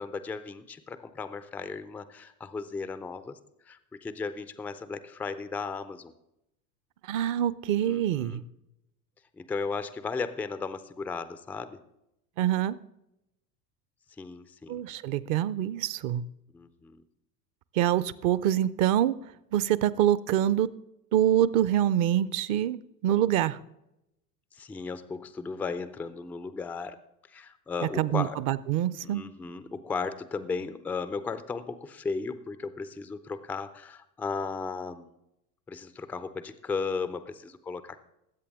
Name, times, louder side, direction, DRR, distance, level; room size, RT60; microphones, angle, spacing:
voice 1, 0.0-3.4 3.6-6.1 7.8-8.4 9.4-11.8 14.2-14.8 16.5-17.0 24.5-27.0 27.3-28.4 29.0-35.1 35.7-38.0, left 4 dB, 5° left, 12 dB, 0.3 m, -35 dB
voice 2, 7.1-8.4 12.4-12.8 14.7-16.2 17.7-19.2 19.5-20.7 21.1-23.6 28.0-29.2, right 11 dB, 40° right, 18 dB, 0.6 m, -25 dB
20.0 x 8.4 x 3.5 m, 0.85 s
figure-of-eight pair, 75°, 48 cm